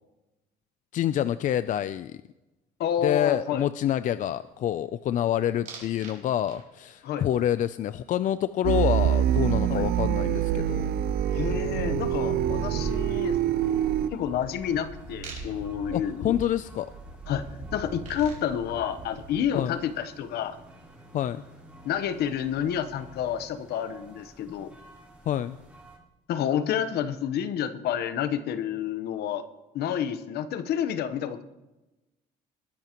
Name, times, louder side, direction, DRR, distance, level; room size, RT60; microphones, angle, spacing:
voice 1, 0.9-2.2 3.0-10.9 15.9-16.9 19.5-19.8 21.1-21.4 25.3-25.6, left 11 dB, 50° left, 14 dB, 0.4 m, -27 dB
voice 2, 2.8-3.7 7.0-7.3 9.7-9.9 11.3-13.4 14.1-16.4 17.3-17.4 17.7-20.6 21.8-24.7 26.3-29.4 29.7-31.4, left 9 dB, 75° left, 12 dB, 1.0 m, -29 dB
sound 1, 5.7-6.2 6.5-7.0 9.4-9.5 9.7-19.8, right 2 dB, 50° right, 4.6 m, -41 dB
sound 2, 8.6-14.1, right 11 dB, 65° right, 0.6 m, -25 dB
sound 3, 12.3-26.0, right 1 dB, 10° right, 3.6 m, -51 dB
20.5 x 10.5 x 3.0 m, 1.0 s
cardioid pair, 110°, 17 cm